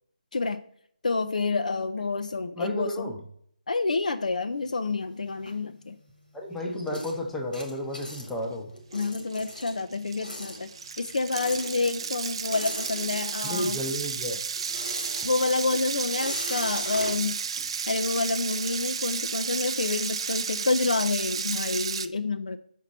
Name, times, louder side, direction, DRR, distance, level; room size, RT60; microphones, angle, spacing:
voice 1, 1.0-3.1 3.7-6.0 8.9-10.7 11.0-13.8 15.2-17.4 17.9-22.6, left 3 dB, 60° left, 10 dB, 0.5 m, -28 dB
voice 2, 2.6-3.2 6.3-8.7 13.4-14.4, left 1 dB, 5° left, 1 dB, 0.7 m, -32 dB
sound 1, 4.5-6.1 6.4-13.7 13.9-18.6, equal, 80° left, 2.1 m, -40 dB
sound 2, 8.9-9.0 9.3-22.1, right 6 dB, 35° right, 0.3 m, -32 dB
5.8 x 4.5 x 4.1 m, 0.63 s
figure-of-eight pair, 150°, 5 cm